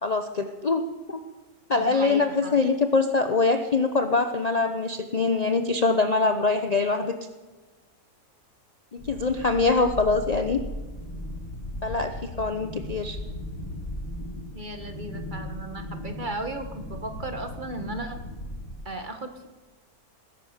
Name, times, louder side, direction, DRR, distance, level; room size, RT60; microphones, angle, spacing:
voice 1, 0.0-1.2 1.7-7.2 8.9-10.6 11.8-13.2, left 3 dB, 35° left, 7 dB, 0.7 m, -24 dB
voice 2, 1.8-2.6 14.5-18.2 18.8-19.5, right 2 dB, 30° right, 6 dB, 1.5 m, -36 dB
sound 1, 9.0-18.7, left 1 dB, 75° left, 4.6 m, -37 dB
19.5 x 11.0 x 6.6 m, 1.2 s
omnidirectional pair, 1.6 m